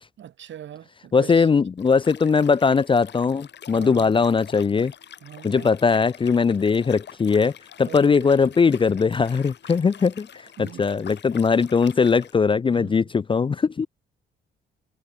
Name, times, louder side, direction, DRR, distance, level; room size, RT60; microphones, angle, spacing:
voice 1, 0.2-1.5 3.7-4.3 5.2-5.7 7.8-8.8 10.6-10.9 12.7-13.1, right 10 dB, 65° right, 5.3 m, -41 dB
voice 2, 1.1-4.9 5.4-7.5 7.8-10.3 10.6-13.9, left 5 dB, 25° left, 0.5 m, -20 dB
Liquid, 1.8-12.3, left 9 dB, 60° left, 5.8 m, -46 dB
cardioid pair, 90°, 20 cm